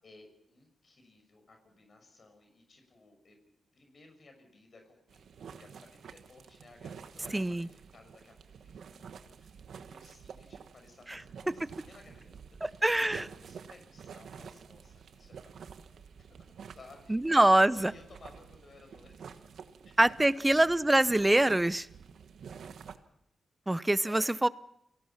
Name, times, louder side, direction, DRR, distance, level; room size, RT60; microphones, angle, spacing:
voice 1, 0.0-3.4 3.7-15.7 16.3-20.9 22.1-22.3 24.0-24.3, left 3 dB, 55° left, 4 dB, 6.3 m, -58 dB
sound 1, 5.1-23.0, right 6 dB, 80° right, 1.2 m, -49 dB
voice 2, 7.3-7.7 11.1-11.2 12.6-13.2 17.1-17.9 20.0-21.9 23.7-24.5, right 1 dB, 15° right, 17 dB, 0.8 m, -24 dB
29.5 x 18.0 x 5.8 m, 0.77 s
cardioid pair, 60°, 0 cm